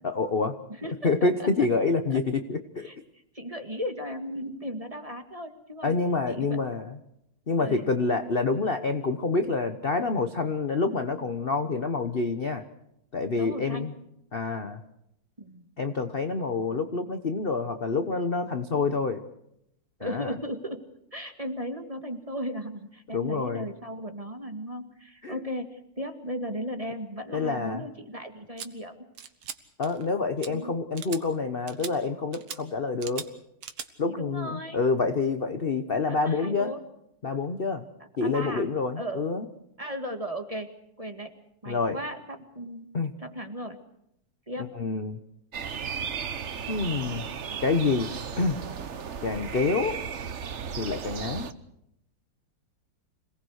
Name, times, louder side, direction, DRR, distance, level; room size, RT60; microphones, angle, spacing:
voice 1, 0.0-0.5 1.0-2.9 5.8-7.0 7.5-12.6 13.1-13.9 14.3-14.8 15.8-19.2 20.0-20.3 23.1-23.7 25.2-25.3 27.3-27.8 29.8-33.2 34.0-36.7 37.2-37.8 38.2-39.4 41.7-42.0 42.9-43.1 44.8-45.2 46.7-47.3 47.6-48.1 48.4-48.6 49.2-50.0 50.8-51.5, left 4 dB, 35° left, 8 dB, 0.9 m, -27 dB
voice 2, 0.7-1.5 2.1-2.2 2.8-3.0 3.3-5.9 6.3-6.6 7.6-7.9 13.4-13.9 15.4-15.6 20.0-29.0 30.5-30.8 34.1-34.8 36.1-36.8 38.0-38.7 39.0-39.3 39.8-40.7 41.0-41.3 41.6-42.9 43.2-43.8 44.5-44.7, equal, 15° right, 5 dB, 1.8 m, -36 dB
sound 1, 28.6-28.7 29.2-29.6 29.8-30.1 30.4-30.5 31.0-31.2 31.7-31.9 32.3-32.6 33.0-33.3 33.6-33.9, right 8 dB, 70° right, 2.1 m, -39 dB
sound 2, 45.5-51.5, right 7 dB, 45° right, 0.9 m, -35 dB
27.0 x 18.5 x 6.5 m, 0.79 s
omnidirectional pair, 2.4 m